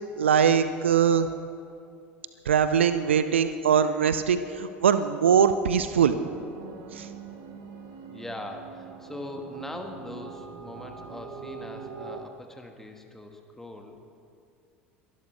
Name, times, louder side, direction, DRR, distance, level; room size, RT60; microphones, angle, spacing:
voice 1, 0.2-1.3 2.5-6.2 6.9-7.1, right 7 dB, 75° right, 12 dB, 0.5 m, -22 dB
sound 1, 5.9-12.2, right 5 dB, 55° right, 1.3 m, -43 dB
voice 2, 8.1-14.0, left 1 dB, 5° left, 4 dB, 1.5 m, -41 dB
22.5 x 12.0 x 3.3 m, 2.4 s
figure-of-eight pair, 70°, 7 cm